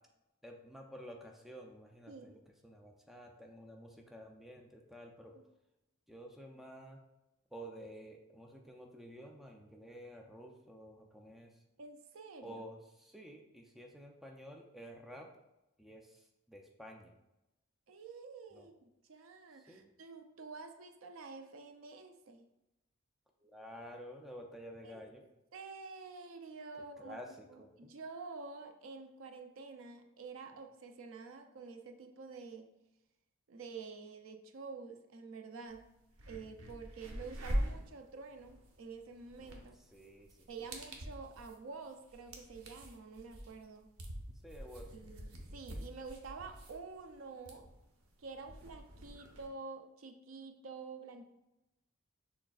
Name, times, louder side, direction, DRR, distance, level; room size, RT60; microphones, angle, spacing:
voice 1, 0.4-5.3 6.1-7.0 7.5-11.6 12.4-15.3 15.8-17.1 18.5-18.7 19.7-19.9 23.4-25.2 27.0-27.9 39.9-40.7 44.4-44.9, equal, ahead, 1 dB, 0.4 m, -51 dB
voice 2, 2.1-2.4 5.3-5.4 11.8-12.6 17.9-18.8 19.1-22.4 24.8-25.1 25.5-27.2 27.5-32.7 33.5-35.9 36.2-39.8 40.5-43.9 44.9-47.7 48.2-51.2, right 4 dB, 65° right, 6 dB, 0.5 m, -48 dB
sound 1, 35.7-35.8 36.1-49.5, equal, 85° right, 0.8 m, -44 dB
6.2 x 3.4 x 2.4 m, 0.94 s
head